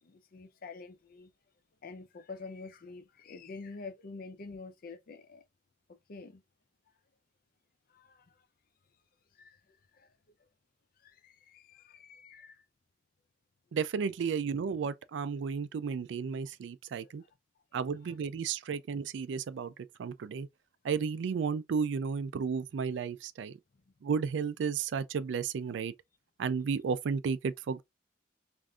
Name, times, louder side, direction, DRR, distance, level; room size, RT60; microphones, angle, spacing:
voice 1, 0.0-1.3 1.8-5.4 6.1-6.4 7.9-8.4 9.4-10.1 11.0-12.6 17.0-17.1 18.0-18.1, left 4 dB, 50° left, 0.5 m, -47 dB
voice 2, 13.7-17.2 17.7-19.7 20.0-20.5 20.8-23.6 24.0-25.9 26.4-27.8, right 6 dB, 75° right, 0.3 m, -33 dB
3.5 x 2.5 x 2.3 m
head